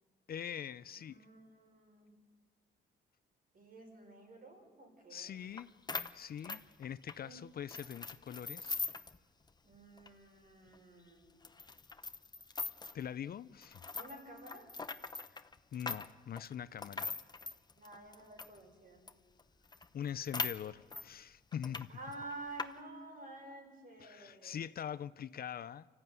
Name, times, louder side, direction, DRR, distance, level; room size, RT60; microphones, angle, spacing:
voice 1, 0.3-1.3 5.1-5.7 6.1-8.8 12.9-13.8 15.7-17.1 19.9-21.9 24.0-25.9, left 9 dB, 50° left, 0.6 m, -43 dB
voice 2, 0.9-2.1 3.5-5.5 7.2-7.4 9.6-11.4 13.9-14.7 17.8-19.0 21.9-24.6, right 2 dB, 45° right, 6.4 m, -51 dB
sound 1, 5.6-5.7 5.9-7.2 7.7-9.2 9.5-9.6 10.0-10.1 10.7-10.8 11.4-13.0 13.6-18.6 19.1-19.2 19.4-19.5 19.7-21.1 21.5-21.9 22.1-22.7, left 4 dB, 20° left, 0.9 m, -41 dB
25.0 x 14.5 x 9.4 m
cardioid pair, 90°, 20 cm